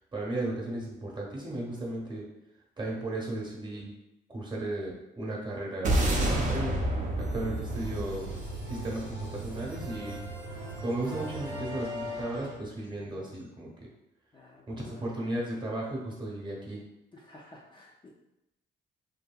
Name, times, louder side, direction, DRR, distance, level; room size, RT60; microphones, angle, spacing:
voice 1, 0.1-2.3 2.8-3.9 4.3-6.8 7.2-8.3 8.7-10.2 10.8-13.9 14.7-16.8, right 1 dB, 25° right, -3 dB, 0.9 m, -35 dB
sound 1, 5.8-10.3, right 1 dB, 40° right, 0.5 m, -30 dB
sound 2, 6.9-12.5, right 1 dB, 85° right, 0.6 m, -40 dB
sound 3, 8.3-13.5, equal, 85° left, 0.7 m, -51 dB
voice 2, 14.3-15.1 17.1-18.1, left 2 dB, 25° left, -4 dB, 0.4 m, -51 dB
2.7 x 2.6 x 2.3 m, 0.89 s
cardioid pair, 90°, 20 cm